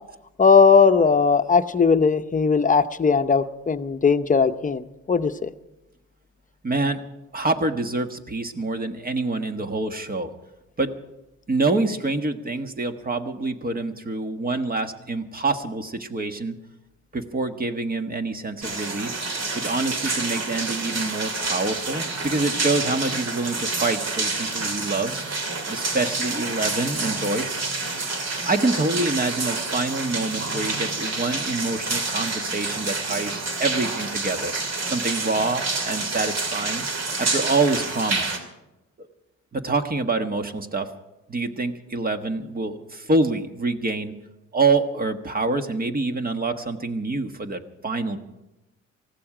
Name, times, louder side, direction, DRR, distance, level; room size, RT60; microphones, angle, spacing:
voice 1, 0.4-5.5, left 5 dB, 25° left, 10 dB, 0.8 m, -18 dB
voice 2, 6.6-7.0 7.3-10.3 10.8-10.9 11.5-16.5 17.1-19.2 19.5-25.2 25.7-27.6 28.4-34.5 34.9-36.9 37.2-38.3 39.0-39.1 39.5-40.9 41.3-44.2 44.5-48.2, right 3 dB, 30° right, 7 dB, 1.4 m, -26 dB
sound 1, 18.6-38.4, right 3 dB, 55° right, 2.8 m, -28 dB
19.5 x 15.0 x 5.0 m, 0.97 s
cardioid pair, 90°, 30 cm